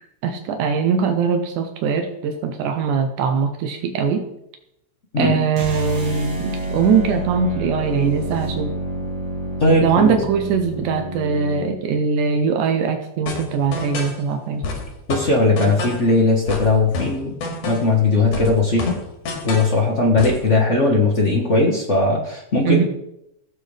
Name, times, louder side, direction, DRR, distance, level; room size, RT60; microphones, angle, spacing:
voice 1, 0.2-4.3 5.2-8.7 9.8-14.7 22.7-22.8, right 6 dB, 80° right, 6 dB, 2.3 m, -21 dB
voice 2, 5.1-5.5 9.6-10.2 15.1-17.3 17.7-19.0 19.4-22.8, left 2 dB, 60° left, -2 dB, 0.7 m, -18 dB
sound 1, 5.5-11.8, right 2 dB, 65° right, 3.7 m, -28 dB
sound 2, 13.3-14.2 14.6-16.1 16.5-18.0 18.3-19.8 20.2-20.5, left 3 dB, 85° left, 3.5 m, -29 dB
16.0 x 7.7 x 3.4 m, 0.82 s
omnidirectional pair, 3.6 m